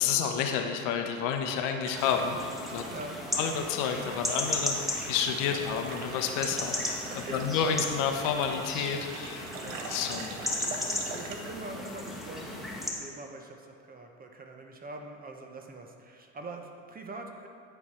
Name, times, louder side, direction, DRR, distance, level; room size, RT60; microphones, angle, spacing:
voice 1, 0.0-2.8 3.4-9.5 9.9-10.4, left 7 dB, 55° left, 4 dB, 0.9 m, -30 dB
sound 1, 1.2-12.9, right 3 dB, 70° right, 0.9 m, -44 dB
sound 2, 2.0-12.9, left 1 dB, ahead, 1.2 m, -36 dB
voice 2, 7.1-7.8 9.6-9.8 10.8-17.5, right 3 dB, 20° right, 3 dB, 0.8 m, -44 dB
9.9 x 4.7 x 4.2 m, 2.3 s
hypercardioid pair, 75°, 39 cm